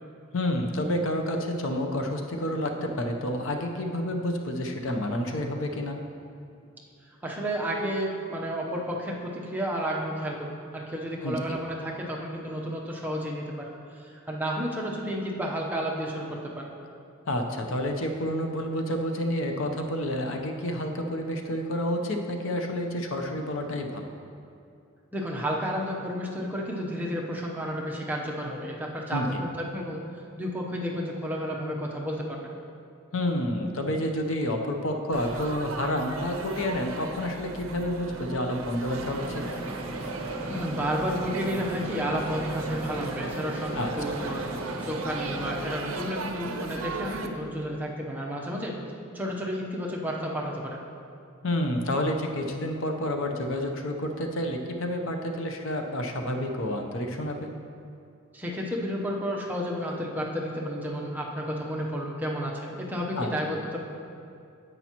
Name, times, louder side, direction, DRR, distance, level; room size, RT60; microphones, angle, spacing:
voice 1, 0.3-6.0 11.2-11.6 17.3-24.1 29.1-29.4 33.1-39.4 43.8-43.9 51.4-57.5 63.2-63.3, left 1 dB, 65° left, 3 dB, 0.7 m, -29 dB
voice 2, 7.2-13.7 14.0-16.8 25.1-30.0 30.4-32.6 40.5-44.5 44.8-48.8 49.1-50.8 58.3-63.8, equal, 10° right, -2 dB, 0.8 m, -31 dB
Laughter / Chatter / Crowd, 35.1-47.3, right 4 dB, 65° right, 0.6 m, -37 dB
sound 1, 38.9-45.6, right 2 dB, 25° right, 1.5 m, -36 dB
10.5 x 8.2 x 2.9 m, 2.5 s
head